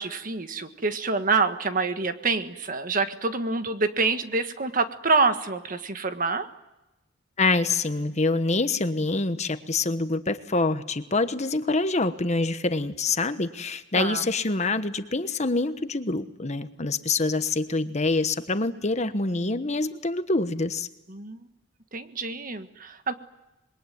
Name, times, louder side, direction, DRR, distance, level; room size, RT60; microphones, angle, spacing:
voice 1, 0.0-6.5 13.9-14.2 21.1-21.4 21.9-23.1, right 4 dB, 50° right, 9 dB, 1.6 m, -26 dB
voice 2, 7.4-20.9, left 3 dB, 40° left, 10 dB, 1.2 m, -26 dB
26.5 x 22.0 x 9.4 m, 0.96 s
head